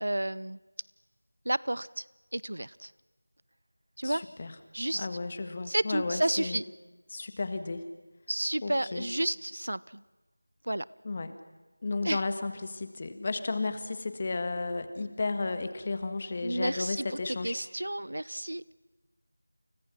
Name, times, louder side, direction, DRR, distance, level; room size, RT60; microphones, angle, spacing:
voice 1, 0.0-0.6 1.4-2.0 2.3-2.9 4.0-4.3 4.7-5.1 5.7-6.6 8.3-10.0 10.6-10.9 12.0-12.2 16.4-17.2 17.4-18.7, right 1 dB, 70° right, 21 dB, 0.8 m, -31 dB
voice 2, 4.0-4.5 4.9-6.6 7.1-7.8 8.6-9.1 11.0-11.4 11.8-17.6, left 3 dB, 25° left, 10 dB, 1.6 m, -33 dB
30.0 x 29.5 x 6.0 m, 1.2 s
figure-of-eight pair, 175°, 0 cm